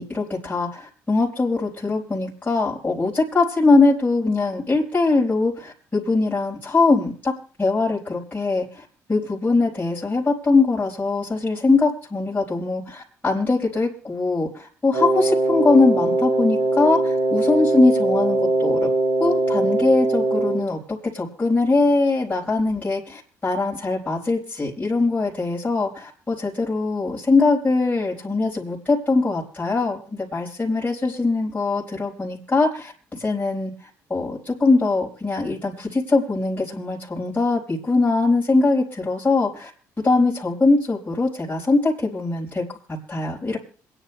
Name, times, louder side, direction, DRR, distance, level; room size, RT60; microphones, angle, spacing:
voice 1, 0.0-7.3 7.6-18.9 19.2-33.7 34.1-39.7 40.0-43.6, left 3 dB, 20° left, -5 dB, 4.5 m, -22 dB
Wind instrument woodwind instrument, 14.9-20.7, right 2 dB, 90° right, 6.5 m, -21 dB
27.5 x 10.0 x 2.3 m, 0.41 s
hypercardioid pair, 55°, 9 cm